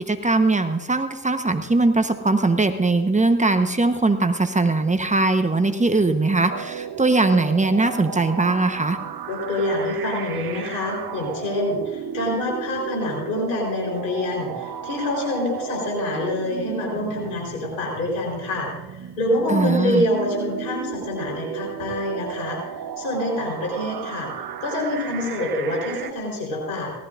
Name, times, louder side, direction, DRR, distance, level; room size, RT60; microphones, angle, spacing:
voice 1, 0.0-9.0 19.5-20.1, right 3 dB, 15° right, 8 dB, 1.1 m, -20 dB
sound 1, 6.5-26.1, right 9 dB, 45° right, 1.1 m, -34 dB
voice 2, 9.3-22.6 23.0-26.9, left 1 dB, 90° left, -2 dB, 4.4 m, -26 dB
18.0 x 13.5 x 2.6 m, 1.1 s
hypercardioid pair, 55°, 50 cm